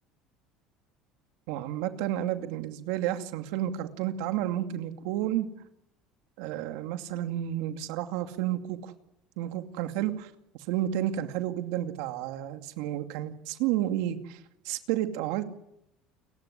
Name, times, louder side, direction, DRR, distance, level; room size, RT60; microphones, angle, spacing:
voice 1, 1.5-5.5 6.4-8.9 9.4-10.3 10.7-14.4 14.6-15.4, right 12 dB, 75° right, 8 dB, 2.4 m, -31 dB
29.5 x 15.5 x 10.0 m, 0.81 s
cardioid pair, 160°, 0 cm